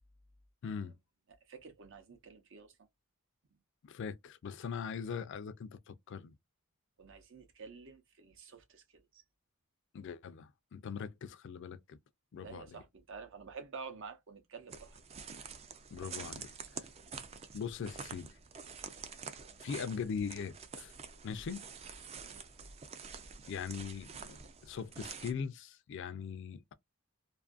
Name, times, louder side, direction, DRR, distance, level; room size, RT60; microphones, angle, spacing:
voice 1, 0.6-0.9 3.8-6.3 9.9-12.0 12.3-12.8 15.9-16.5 17.5-18.3 19.6-20.9 21.2-21.6 23.5-24.4 24.6-26.7, left 6 dB, 60° left, 0.4 m, -41 dB
voice 2, 1.3-2.9 3.5-3.6 7.0-9.2 12.4-15.0 22.1-22.4, right 5 dB, 60° right, 0.7 m, -50 dB
sound 1, 14.7-25.3, right 6 dB, 30° right, 0.3 m, -48 dB
2.5 x 2.4 x 2.4 m
head